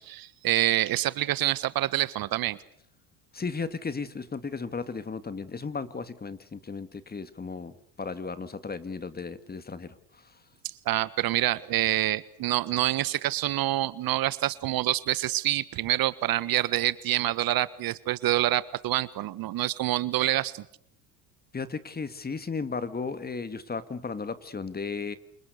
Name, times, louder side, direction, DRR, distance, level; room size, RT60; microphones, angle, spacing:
voice 1, 0.0-2.6 10.6-20.6, right 15 dB, 50° right, 17 dB, 1.5 m, -27 dB
voice 2, 3.3-10.4 21.5-25.2, left 4 dB, 20° left, 12 dB, 2.3 m, -35 dB
29.0 x 27.5 x 6.7 m, 0.64 s
supercardioid pair, 85°, 44 cm